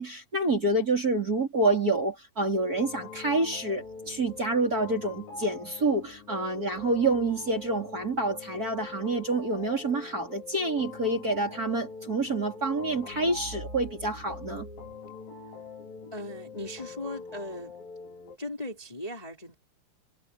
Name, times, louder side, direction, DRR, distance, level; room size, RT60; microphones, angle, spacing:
voice 1, 0.0-14.7, right 2 dB, 25° right, 3.9 m, -28 dB
sound 1, 2.5-18.4, left 4 dB, 65° left, 6.3 m, -44 dB
voice 2, 16.1-17.8 18.4-19.5, left 1 dB, 10° left, 3.3 m, -38 dB
omnidirectional pair, 4.4 m